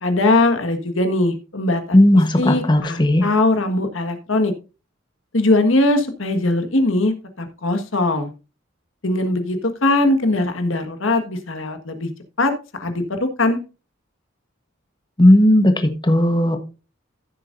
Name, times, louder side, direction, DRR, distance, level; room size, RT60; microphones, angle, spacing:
voice 1, 0.0-4.5 5.3-8.3 9.0-12.1 12.4-12.5 12.8-13.6, left 2 dB, 80° left, 7 dB, 1.6 m, -20 dB
voice 2, 1.9-3.3 15.2-16.6, left 1 dB, 25° left, 6 dB, 1.1 m, -15 dB
14.0 x 7.4 x 2.6 m, 0.31 s
head